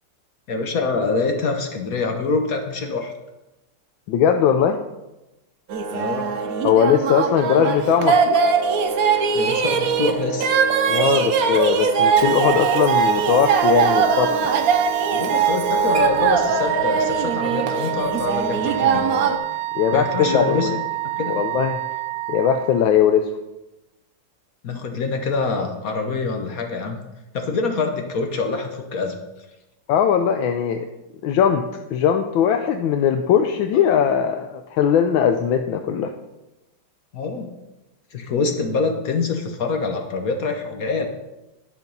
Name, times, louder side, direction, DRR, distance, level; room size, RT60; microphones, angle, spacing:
voice 1, 0.5-3.1 5.9-6.3 9.3-10.5 15.1-19.1 19.9-20.7 21.2-21.3 24.6-27.0 27.3-29.1 33.7-34.0 37.1-37.5 38.1-41.1, left 4 dB, 55° left, 4 dB, 1.1 m, -25 dB
voice 2, 4.1-4.8 6.6-8.5 10.9-14.5 19.7-20.8 21.3-21.8 22.3-23.3 29.9-30.9 31.2-36.1, left 8 dB, 90° left, 6 dB, 1.4 m, -19 dB
sound 1, 5.7-19.4, right 6 dB, 60° right, 1.0 m, -21 dB
Water / Sink (filling or washing), 11.9-17.7, right 3 dB, 45° right, 1.5 m, -42 dB
Wind instrument woodwind instrument, 12.1-22.9, right 16 dB, 80° right, 1.3 m, -28 dB
10.5 x 5.8 x 5.3 m, 0.99 s
omnidirectional pair, 2.1 m